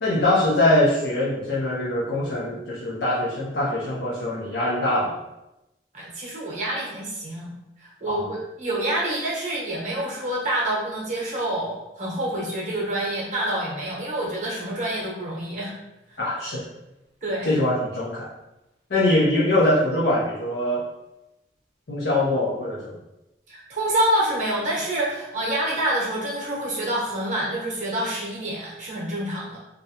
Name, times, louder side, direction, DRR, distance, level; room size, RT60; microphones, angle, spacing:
voice 1, 0.0-5.2 8.1-8.3 16.2-16.6 17.5-18.3 18.9-20.8 21.9-23.0, left 1 dB, 70° left, -6 dB, 0.5 m, -23 dB
voice 2, 5.9-15.8 16.1-16.2 17.2-17.5 23.5-29.6, right 1 dB, 45° right, -4 dB, 0.8 m, -27 dB
2.4 x 2.1 x 2.7 m, 0.93 s
head